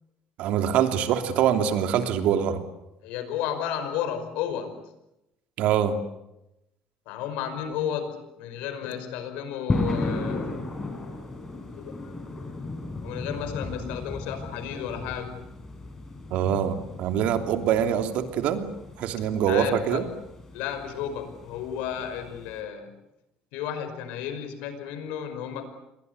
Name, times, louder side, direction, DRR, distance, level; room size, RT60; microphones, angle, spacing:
voice 1, 0.4-2.6 5.6-6.0 16.3-18.7 19.0-20.0, right 9 dB, 65° right, 6 dB, 3.1 m, -24 dB
voice 2, 3.0-4.8 7.1-10.6 11.7-12.2 13.0-15.4 19.4-20.1 20.5-22.9 23.5-25.7, left 9 dB, 90° left, 9 dB, 5.4 m, -33 dB
sound 1, 9.7-22.6, left 2 dB, 15° left, 5.9 m, -35 dB
29.0 x 22.5 x 8.3 m, 0.89 s
cardioid pair, 145°, 2 cm